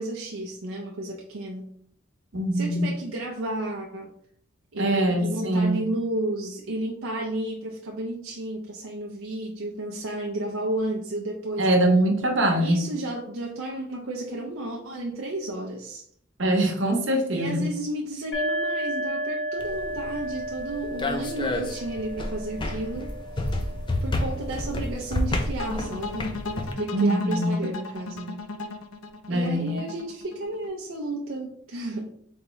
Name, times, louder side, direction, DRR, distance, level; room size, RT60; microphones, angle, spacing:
voice 1, 0.0-1.7 2.5-4.1 4.7-11.7 12.6-16.0 17.3-23.1 23.4-23.6 24.0-26.4 26.8-28.5 29.3-32.1, right 1 dB, 80° right, 0 dB, 0.6 m, -32 dB
voice 2, 2.3-2.9 4.8-5.8 11.6-12.8 16.4-17.6 26.9-27.5 29.3-29.7, right 1 dB, 60° right, 2 dB, 1.0 m, -23 dB
sound 1, 18.3-25.8, equal, 65° left, 1.0 m, -34 dB
sound 2, 19.6-26.7, left 1 dB, 20° left, 0.4 m, -30 dB
sound 3, 25.6-30.7, left 3 dB, 85° left, 0.5 m, -36 dB
4.0 x 3.5 x 3.1 m, 0.68 s
head